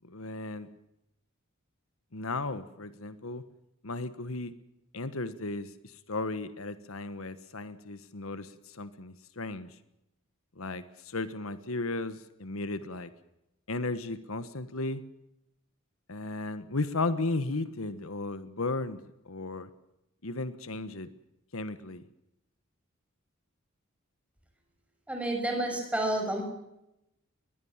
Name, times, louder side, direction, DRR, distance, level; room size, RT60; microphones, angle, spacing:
voice 1, 0.0-0.7 2.1-3.4 3.8-4.5 4.9-5.7 6.1-9.7 10.6-13.1 13.7-15.0 16.1-19.0 19.3-19.7 20.2-21.1 21.5-22.0, left 2 dB, 75° left, 13 dB, 1.4 m, -35 dB
voice 2, 25.1-26.4, right 1 dB, 5° right, 3 dB, 6.2 m, -30 dB
22.0 x 20.5 x 7.3 m, 0.86 s
head